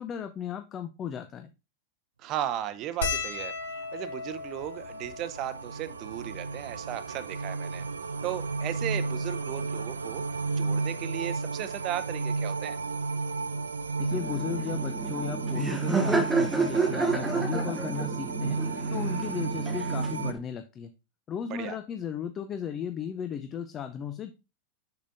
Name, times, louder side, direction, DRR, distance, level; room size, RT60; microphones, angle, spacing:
voice 1, 0.0-1.5 14.0-18.6 18.9-20.9 21.3-24.3, left 8 dB, 25° left, 8 dB, 0.5 m, -36 dB
voice 2, 2.2-7.8 8.2-10.2 10.5-12.8 21.5-21.8, right 12 dB, 35° right, 14 dB, 0.7 m, -36 dB
sound 1, 3.0-7.6 8.4-8.5 8.7-8.9 10.1-10.3 11.8-11.9 12.1-12.3, left 4 dB, 65° left, 1.3 m, -37 dB
sound 2, 4.1-20.3, right 4 dB, 75° right, 0.4 m, -32 dB
Laughter, 14.1-20.4, right 4 dB, 10° right, 0.8 m, -30 dB
6.8 x 6.4 x 2.6 m, 0.28 s
figure-of-eight pair, 90°, 0 cm